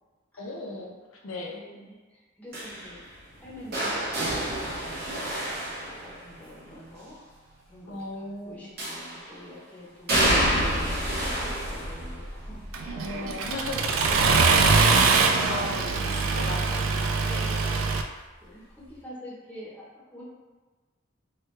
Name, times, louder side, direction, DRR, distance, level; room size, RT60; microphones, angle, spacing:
voice 1, 0.4-1.6 7.9-8.7 12.9-14.2 15.5-17.7, left 2 dB, 85° left, -1 dB, 0.5 m, -37 dB
voice 2, 1.5-3.0 3.4-5.8 6.0-7.2 7.7-13.4 13.7-17.8 18.4-19.9 20.1-20.2, left 1 dB, 10° left, -7 dB, 0.7 m, -45 dB
sound 1, 2.5-6.6 8.8-9.4 10.1-15.9 16.2-16.7 17.9-18.0, right 1 dB, 50° right, 0.9 m, -30 dB
Accelerating revving vroom, 12.7-18.0, right 4 dB, 85° right, 0.3 m, -23 dB
3.3 x 2.2 x 3.1 m, 1.3 s
head